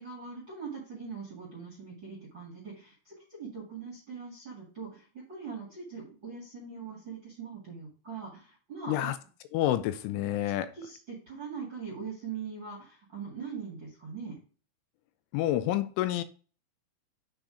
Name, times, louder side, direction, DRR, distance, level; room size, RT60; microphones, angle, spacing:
voice 1, 0.0-9.1 10.7-14.4, right 5 dB, 50° right, 1.3 m, -42 dB
voice 2, 9.5-10.8 15.3-16.2, left 13 dB, 80° left, 3.0 m, -28 dB
8.7 x 3.9 x 5.0 m
omnidirectional pair, 5.7 m